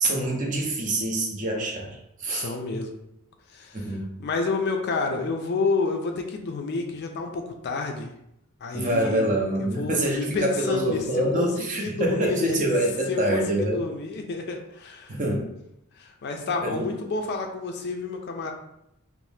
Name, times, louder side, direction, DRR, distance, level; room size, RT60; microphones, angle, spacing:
voice 1, 0.0-2.5 3.7-4.1 8.7-13.8 15.1-15.5 16.6-16.8, right 1 dB, 35° right, 0 dB, 0.5 m, -25 dB
voice 2, 2.3-3.0 3.5-3.9 4.2-8.1 8.6-9.2 9.8-12.6 13.1-15.2 16.0-18.5, left 4 dB, 50° left, 4 dB, 0.4 m, -29 dB
2.7 x 2.0 x 3.2 m, 0.80 s
head